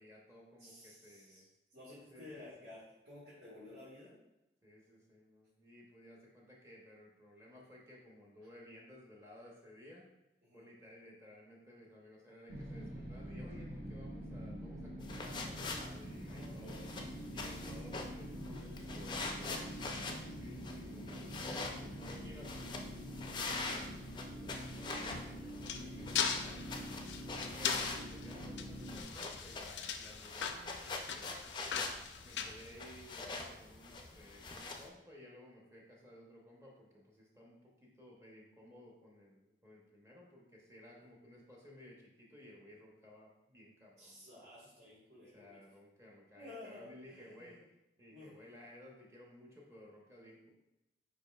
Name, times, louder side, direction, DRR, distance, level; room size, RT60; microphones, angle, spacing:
voice 1, 0.0-1.5 2.1-2.5 4.6-10.1 10.5-16.8 17.3-26.7 27.5-31.4 32.2-44.5 45.3-47.6 48.0-50.5, left 1 dB, 15° right, -3 dB, 0.7 m, -57 dB
voice 2, 0.6-2.8 3.0-4.1 10.4-10.7 16.3-17.1 41.0-41.1 44.0-45.6 46.4-47.6 48.1-48.4, left 2 dB, 75° right, -9 dB, 1.5 m, -54 dB
sound 1, 12.5-29.0, equal, 50° right, 0.8 m, -46 dB
sound 2, 15.0-34.9, left 3 dB, 25° left, 0.4 m, -45 dB
sound 3, 25.1-33.3, left 7 dB, 85° left, 0.4 m, -40 dB
5.1 x 4.5 x 2.3 m, 0.95 s
head